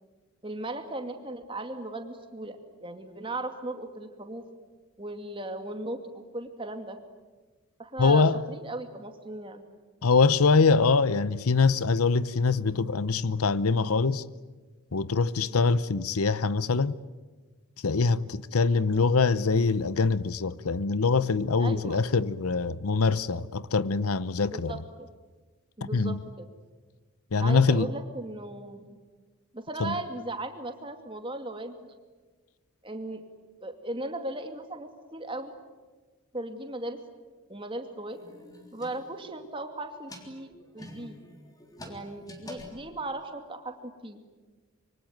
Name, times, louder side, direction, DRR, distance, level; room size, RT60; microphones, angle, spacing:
voice 1, 0.4-4.4 5.0-7.0 7.8-9.6 15.4-15.6 21.6-22.0 24.4-25.1 25.8-26.5 27.4-29.0 29.5-31.9 32.8-33.2 33.6-35.5 36.3-37.0 37.5-38.2 38.7-41.2 41.8-44.2, right 2 dB, 25° right, 2.4 m, -37 dB
voice 2, 8.0-8.4 10.0-14.2 14.9-17.0 17.8-24.8 25.9-26.2 27.3-27.9 29.8-29.9, left 4 dB, 85° left, 0.8 m, -24 dB
sound 1, 38.1-39.5 39.9-43.3, left 1 dB, 15° left, 3.5 m, -47 dB
26.0 x 24.0 x 9.3 m
head